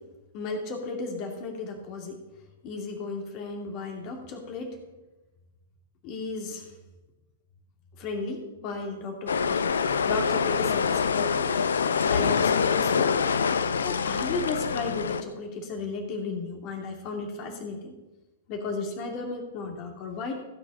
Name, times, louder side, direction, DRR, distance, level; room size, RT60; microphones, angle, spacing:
voice 1, 0.3-2.2 2.6-4.8 6.0-6.6 8.0-9.7 10.1-11.4 12.1-13.2 13.7-17.9 18.5-20.4, left 3 dB, 40° left, 2 dB, 2.5 m, -34 dB
sound 1, 9.3-15.2, left 6 dB, 70° left, 0.7 m, -25 dB
15.5 x 6.7 x 5.4 m, 1.1 s
figure-of-eight pair, 105°, 0 cm